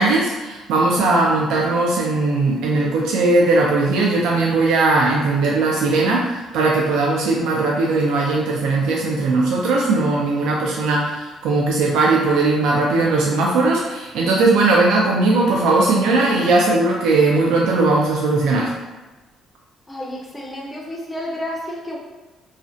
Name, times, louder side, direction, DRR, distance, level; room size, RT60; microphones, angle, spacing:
voice 1, 0.0-18.7, right 3 dB, 85° right, -2 dB, 0.3 m, -18 dB
voice 2, 19.9-22.0, left 1 dB, 10° left, -3 dB, 0.4 m, -30 dB
2.4 x 2.1 x 2.5 m, 1.2 s
cardioid pair, 145°, 0 cm